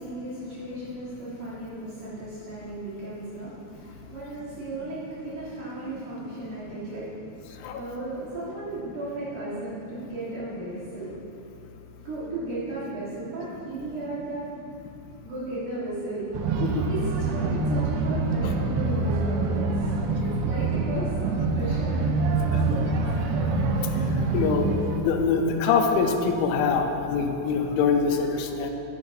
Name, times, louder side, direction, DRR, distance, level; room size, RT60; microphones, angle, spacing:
voice 1, 0.0-7.1 7.8-11.2 12.0-14.5 15.2-16.3 16.9-23.4, right 2 dB, 60° right, -10 dB, 2.3 m, -35 dB
sound 1, 16.3-25.0, right 3 dB, 85° right, 2.9 m, -25 dB
voice 2, 24.3-24.7 24.9-28.7, left 5 dB, 90° left, 5 dB, 3.0 m, -24 dB
10.5 x 8.1 x 2.5 m, 2.8 s
omnidirectional pair, 5.2 m